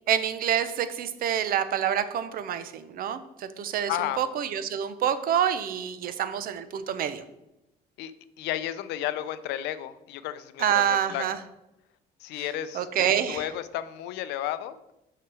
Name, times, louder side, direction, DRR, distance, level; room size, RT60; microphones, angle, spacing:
voice 1, 0.1-3.9 4.2-7.2 10.6-11.4 12.7-13.4, right 9 dB, 60° right, 12 dB, 0.7 m, -27 dB
voice 2, 3.9-4.2 8.0-8.1 8.4-11.2 12.2-12.9 13.3-14.8, left 12 dB, 90° left, 13 dB, 0.5 m, -32 dB
5.8 x 5.8 x 4.8 m, 0.90 s
cardioid pair, 110°, 17 cm